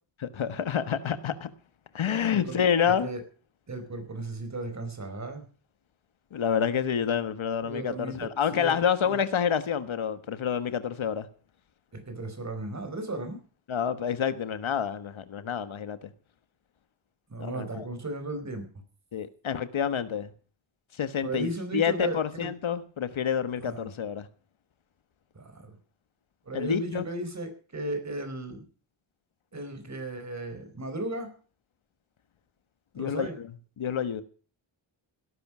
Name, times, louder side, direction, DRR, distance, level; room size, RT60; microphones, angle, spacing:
voice 1, 0.2-1.5 1.9-3.1 6.3-11.3 13.7-16.1 17.4-17.8 19.1-20.3 21.0-24.3 26.5-27.0 32.9-33.5 33.8-34.2, left 8 dB, 70° left, 12 dB, 1.5 m, -28 dB
voice 2, 2.3-2.6 3.0-3.2 3.7-5.4 7.6-8.2 8.5-8.8 9.0-9.2 11.9-13.4 17.3-18.7 21.2-22.5 23.6-23.9 25.3-25.7 26.5-28.6 29.5-31.3 33.0-33.3, right 2 dB, 35° right, 8 dB, 4.7 m, -35 dB
18.0 x 11.5 x 6.1 m, 0.41 s
wide cardioid pair, 150°, 50 cm